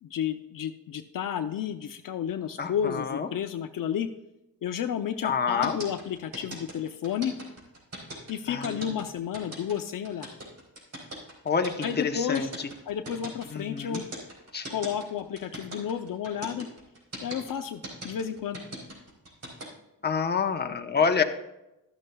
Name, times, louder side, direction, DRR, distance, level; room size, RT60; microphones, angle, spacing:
voice 1, 0.0-4.1 4.6-7.3 8.3-10.3 11.8-12.5 12.9-14.0 14.7-16.7 17.2-18.6, left 9 dB, 65° left, 8 dB, 0.6 m, -31 dB
voice 2, 2.6-3.3 5.2-5.8 8.5-8.9 11.4-12.5 13.5-14.0 14.5-14.7 20.0-21.2, left 5 dB, 30° left, 6 dB, 0.9 m, -27 dB
sound 1, 5.6-19.6, right 1 dB, 45° right, 4.4 m, -40 dB
13.5 x 12.0 x 2.3 m, 0.93 s
cardioid pair, 115°, 36 cm